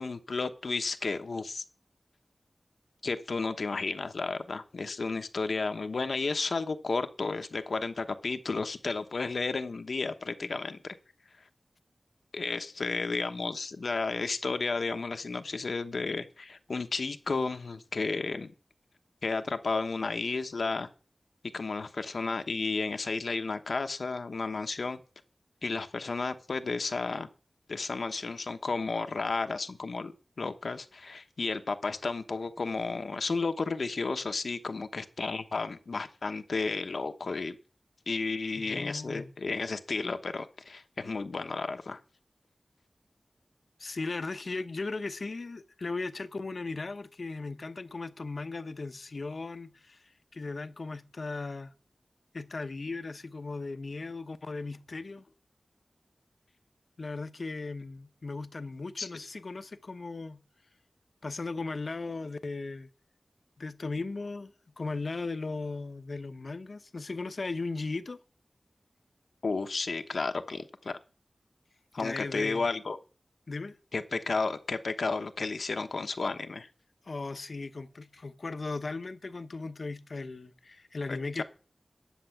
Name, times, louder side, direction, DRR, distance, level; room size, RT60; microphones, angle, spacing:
voice 1, 0.0-1.6 3.0-11.0 12.3-18.5 19.2-20.9 21.5-25.0 25.6-27.3 27.7-30.1 30.4-37.6 38.1-42.0 59.0-59.1 69.4-71.0 71.9-73.0 73.9-76.7 81.1-81.4, left 4 dB, 90° left, 1.0 m, -32 dB
voice 2, 38.6-39.3 43.8-51.7 52.3-55.3 57.0-60.4 61.2-62.9 63.6-68.2 72.0-72.7 73.5-73.8 77.0-81.4, left 3 dB, 65° left, 0.8 m, -37 dB
10.0 x 7.4 x 5.8 m
wide cardioid pair, 85°, 0 cm